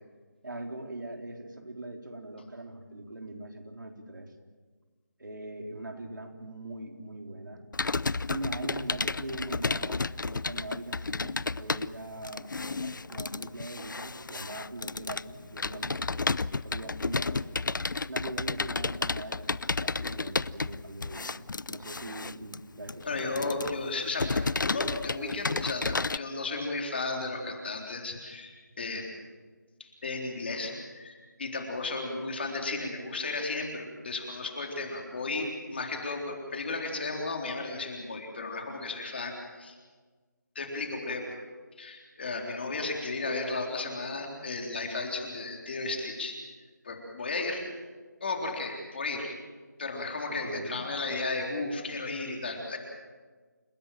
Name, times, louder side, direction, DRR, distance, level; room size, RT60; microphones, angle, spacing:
voice 1, 0.4-4.3 5.2-7.6 8.3-16.4 16.6-17.5 18.1-23.8 50.3-50.8, right 2 dB, 80° right, 3 dB, 4.1 m, -41 dB
Computer keyboard, 7.7-26.2, left 3 dB, 80° left, 0.6 m, -32 dB
voice 2, 23.0-29.1 30.0-39.3 39.6-39.8 40.6-41.4 41.8-46.4 46.8-47.7 48.2-49.3 49.8-52.8, left 3 dB, 35° left, 1 dB, 3.8 m, -34 dB
29.0 x 17.0 x 7.5 m, 1.4 s
figure-of-eight pair, 175°, 10 cm